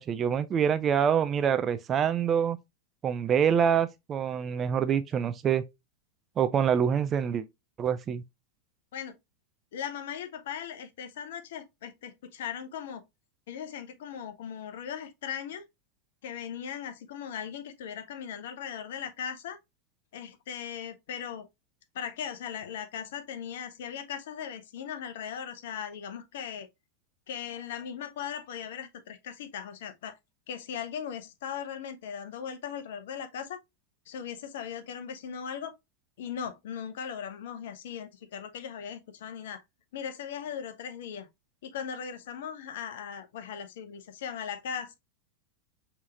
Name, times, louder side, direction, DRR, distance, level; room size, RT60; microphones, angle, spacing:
voice 1, 0.0-2.6 3.0-5.6 6.4-7.4 7.8-8.2, right 8 dB, 25° right, 0.3 m, -26 dB
voice 2, 9.7-13.0 13.5-15.6 16.2-19.6 20.1-21.5 21.9-26.7 27.3-30.2 30.5-33.6 34.1-35.7 36.2-39.6 39.9-41.3 41.6-45.0, left 8 dB, 55° left, 0.6 m, -38 dB
5.5 x 2.9 x 2.4 m
figure-of-eight pair, 90°, 0 cm